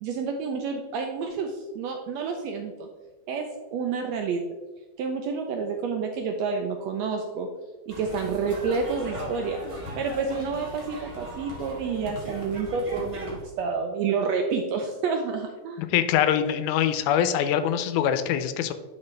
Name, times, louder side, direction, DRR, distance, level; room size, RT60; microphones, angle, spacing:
voice 1, 0.0-2.9 3.3-4.5 5.0-7.5 7.9-9.6 9.9-15.8, right 5 dB, 80° right, 3 dB, 1.5 m, -29 dB
sound 1, 7.9-13.4, equal, 40° right, 0.4 m, -38 dB
voice 2, 15.8-18.7, left 9 dB, 85° left, 10 dB, 2.1 m, -24 dB
9.6 x 4.8 x 3.3 m, 1.2 s
omnidirectional pair, 3.5 m